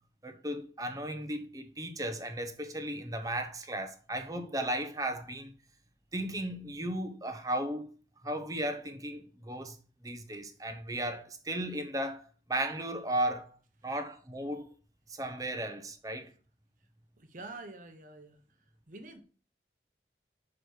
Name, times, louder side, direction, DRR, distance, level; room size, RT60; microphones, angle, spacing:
voice 1, 0.2-5.5 6.1-7.9 8.2-9.8 10.0-12.2 12.5-13.6 13.8-14.7 15.1-16.3, right 1 dB, 20° right, 0.8 m, -35 dB
voice 2, 17.2-18.4 18.9-19.2, right 2 dB, 45° right, 1.0 m, -46 dB
6.4 x 4.9 x 4.8 m
head